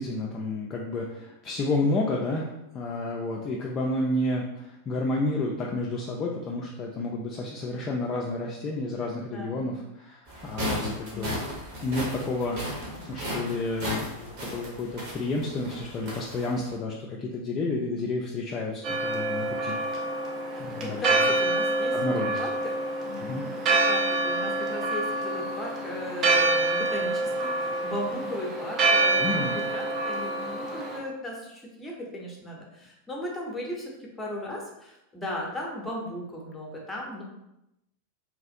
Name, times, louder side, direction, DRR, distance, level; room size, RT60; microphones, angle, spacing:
voice 1, 0.0-11.5 11.8-19.8 20.2-21.3 21.9-22.4 23.2-23.4 29.2-29.5, left 2 dB, 30° left, -2 dB, 0.3 m, -31 dB
voice 2, 9.1-9.7 11.1-11.3 20.5-22.0 22.4-22.8 23.1-37.2, left 1 dB, 10° left, -1 dB, 0.7 m, -37 dB
sound 1, 10.3-16.7, equal, 50° right, 1.1 m, -35 dB
Church bell, 18.8-31.0, right 2 dB, 30° right, 0.5 m, -27 dB
2.8 x 2.4 x 2.6 m, 0.86 s
figure-of-eight pair, 90°, 0 cm